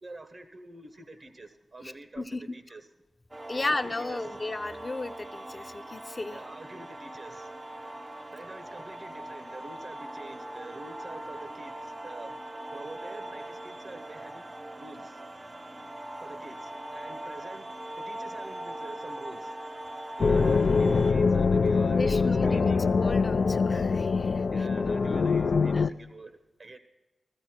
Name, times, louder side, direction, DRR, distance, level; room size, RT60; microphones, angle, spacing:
voice 1, 0.0-2.2 2.5-2.9 3.5-4.4 6.3-7.5 8.3-12.4 12.7-14.5 14.8-15.2 16.2-19.6 20.2-22.9 24.5-26.8, right 2 dB, 55° right, 8 dB, 1.0 m, -47 dB
voice 2, 1.8-2.4 3.5-6.4 21.9-24.7 25.5-25.9, left 2 dB, 35° left, 8 dB, 0.7 m, -35 dB
sound 1, 3.3-21.1, right 1 dB, 30° right, 0.6 m, -41 dB
sound 2, 20.2-25.9, left 4 dB, 65° left, 0.3 m, -24 dB
15.0 x 14.5 x 4.4 m, 1.1 s
cardioid pair, 60°, 0 cm